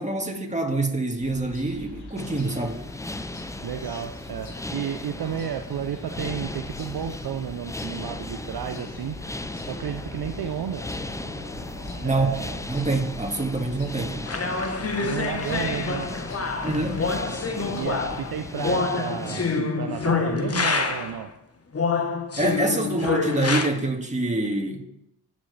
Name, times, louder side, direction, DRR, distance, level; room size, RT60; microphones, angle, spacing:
voice 1, 0.0-2.8 12.0-12.3 12.7-14.3 16.6-17.1 22.4-24.8, right 2 dB, 15° right, 2.2 m, -26 dB
sound 1, 1.2-18.5, left 2 dB, 85° left, 2.6 m, -41 dB
sound 2, 2.2-19.6, left 2 dB, 5° left, 0.6 m, -37 dB
voice 2, 3.6-9.2 9.7-10.8 12.0-12.6 15.0-16.2 17.7-21.3, right 9 dB, 55° right, 0.8 m, -32 dB
sound 3, 14.3-21.2 21.7-23.7, left 4 dB, 30° left, 1.4 m, -26 dB
17.5 x 6.3 x 3.5 m
hypercardioid pair, 45°, 46 cm